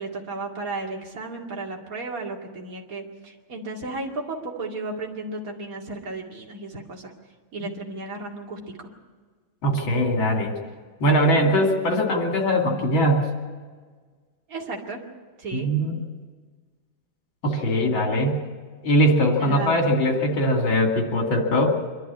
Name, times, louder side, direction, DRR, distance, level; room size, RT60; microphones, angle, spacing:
voice 1, 0.0-7.1 7.5-8.9 14.5-15.0 15.4-15.7 19.4-19.8, right 2 dB, 45° right, -1 dB, 2.7 m, -34 dB
voice 2, 9.6-10.5 11.0-13.3 15.5-16.0 17.4-18.4 18.8-21.7, equal, 80° left, 2 dB, 3.4 m, -21 dB
25.0 x 11.5 x 9.8 m, 1.5 s
omnidirectional pair, 2.2 m